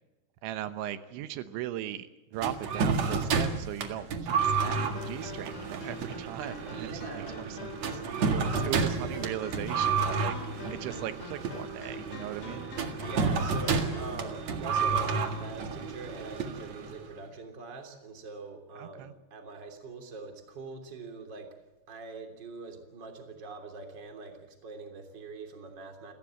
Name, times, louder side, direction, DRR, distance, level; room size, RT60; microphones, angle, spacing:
voice 1, 0.4-8.0 8.3-10.4 10.7-12.7 18.8-19.1, right 12 dB, 85° right, 11 dB, 3.4 m, -38 dB
sound 1, 2.4-17.1, right 5 dB, 50° right, 2.3 m, -31 dB
sound 2, 4.7-14.2, left 4 dB, 80° left, 5.8 m, -46 dB
voice 2, 6.7-7.4 8.3-9.2 13.0-21.6 21.9-26.1, right 3 dB, 25° right, 5 dB, 3.0 m, -43 dB
29.0 x 16.0 x 7.6 m, 1.1 s
omnidirectional pair, 5.3 m